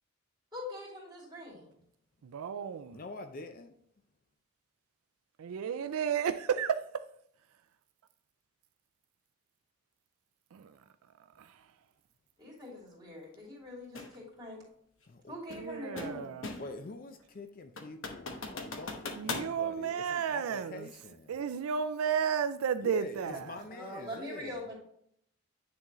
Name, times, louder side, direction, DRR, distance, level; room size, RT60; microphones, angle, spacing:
voice 1, 0.5-1.8 12.4-14.6 15.3-16.3 23.7-24.7, left 1 dB, 20° right, 2.8 m, -43 dB
voice 2, 2.2-3.0 5.4-7.0 10.5-10.7 11.4-11.5 15.5-16.5 19.1-20.9 21.3-23.6, right 7 dB, 75° right, 0.4 m, -33 dB
voice 3, 2.9-3.7 15.1-15.4 16.6-21.4 22.8-24.6, left 3 dB, 40° left, 0.4 m, -45 dB
sound 1, 13.9-14.2 15.5-16.8 17.2-17.3 17.8-19.5, left 3 dB, 60° left, 1.0 m, -39 dB
9.6 x 3.8 x 3.0 m
head